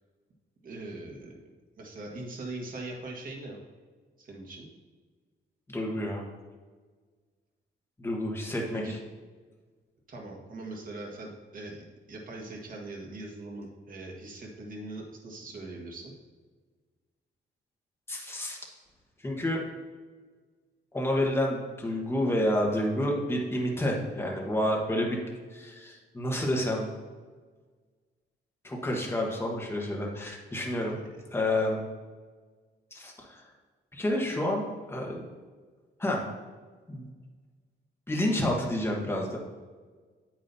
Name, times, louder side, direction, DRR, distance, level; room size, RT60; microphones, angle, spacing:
voice 1, 0.6-1.4 1.8-3.6 4.2-4.7 8.7-9.0 10.1-16.1, right 2 dB, 50° right, 0 dB, 1.7 m, -41 dB
voice 2, 5.7-6.2 8.0-9.0 18.1-18.6 19.2-19.6 20.9-25.2 25.5-26.9 28.6-31.0 31.3-31.8 32.9-33.4 33.9-35.2 36.0-36.2 36.9-37.1 38.1-39.4, left 1 dB, 15° left, -1 dB, 1.4 m, -29 dB
8.8 x 8.6 x 2.7 m, 1.4 s
wide cardioid pair, 155°, 18 cm